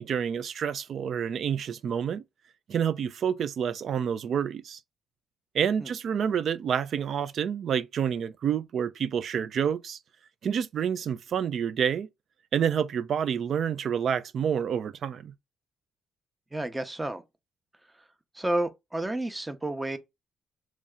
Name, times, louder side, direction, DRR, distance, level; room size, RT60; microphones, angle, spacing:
voice 1, 0.0-2.2 2.7-4.8 5.5-10.0 10.4-12.1 12.5-15.3, right 8 dB, 60° right, 0.4 m, -28 dB
voice 2, 16.5-17.2 18.0-18.1 18.3-20.0, right 1 dB, 15° right, 0.6 m, -31 dB
3.2 x 2.7 x 3.5 m
cardioid pair, 90°, 0 cm